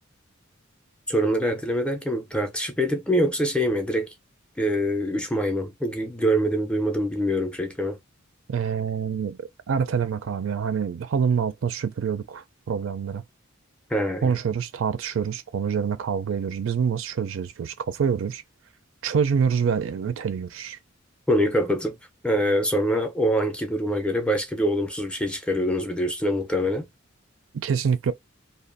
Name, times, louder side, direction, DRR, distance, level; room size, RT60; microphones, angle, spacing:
voice 1, 1.1-4.1 4.6-8.0 13.9-14.3 21.3-22.0 22.2-26.8, equal, 5° left, 0.4 m, -24 dB
voice 2, 8.5-13.2 14.2-18.4 19.0-20.8 27.6-28.1, right 6 dB, 70° right, 0.4 m, -26 dB
2.5 x 2.2 x 2.5 m
head